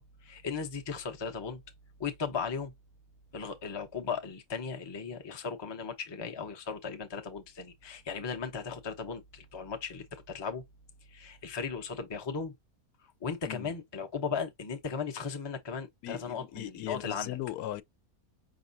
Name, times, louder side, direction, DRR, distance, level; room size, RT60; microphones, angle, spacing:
voice 1, 0.0-1.6 2.0-2.7 3.3-10.6 11.1-12.5 13.2-17.4, left 5 dB, 30° left, 0.5 m, -37 dB
voice 2, 16.0-17.8, left 13 dB, 90° left, 1.1 m, -38 dB
5.3 x 2.9 x 2.6 m
omnidirectional pair, 1.6 m